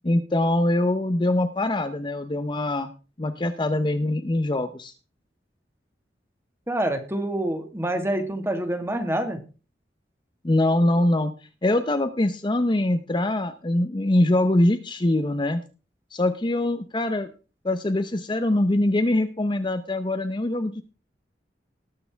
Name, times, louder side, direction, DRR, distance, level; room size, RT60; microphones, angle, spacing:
voice 1, 0.0-2.9 3.2-4.9 10.4-11.3 11.6-15.6 16.1-17.3 17.6-20.8, left 1 dB, 25° left, 9 dB, 0.7 m, -23 dB
voice 2, 6.7-9.4, right 1 dB, 15° right, 6 dB, 1.7 m, -26 dB
19.5 x 6.7 x 3.4 m, 0.34 s
head